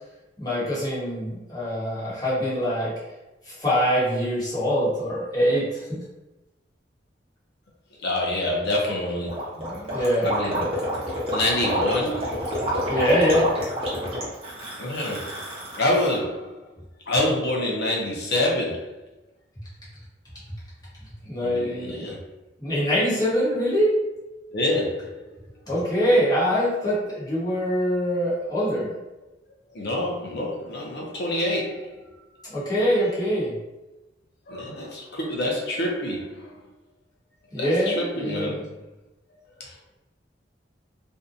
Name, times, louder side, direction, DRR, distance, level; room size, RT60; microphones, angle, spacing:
voice 1, 0.4-2.9 3.5-6.0 9.6-10.3 12.9-13.5 14.2-14.3 21.3-22.1 22.6-23.9 25.7-28.9 32.5-33.5 37.5-38.6, equal, 20° left, -9 dB, 1.0 m, -24 dB
voice 2, 8.0-9.6 10.2-10.8 11.3-12.4 12.9-13.2 14.8-15.3 15.8-16.6 17.1-19.0 21.4-22.2 24.5-25.2 29.7-32.0 32.8-33.2 34.5-36.5 37.6-38.7 39.6-39.7, left 1 dB, 65° left, -2 dB, 0.6 m, -27 dB
Gurgling, 9.3-16.2, equal, 35° right, 0.8 m, -28 dB
2.6 x 2.1 x 2.5 m, 1.0 s
head